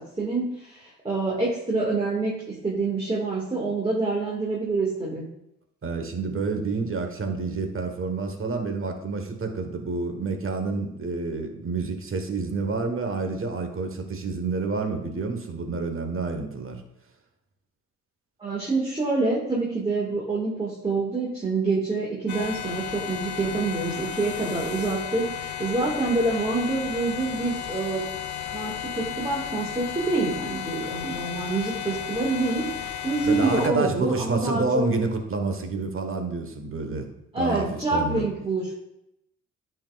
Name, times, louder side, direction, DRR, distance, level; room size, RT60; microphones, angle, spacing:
voice 1, 0.0-5.3 18.4-28.0 28.5-34.9 37.3-38.7, right 3 dB, 15° right, -5 dB, 2.0 m, -27 dB
voice 2, 5.8-16.8 33.2-37.1 37.4-38.2, right 3 dB, 40° right, 5 dB, 1.3 m, -28 dB
sound 1, 22.3-33.7, left 9 dB, 60° left, 0.8 m, -34 dB
10.5 x 4.5 x 2.5 m, 0.84 s
supercardioid pair, 60°, 33 cm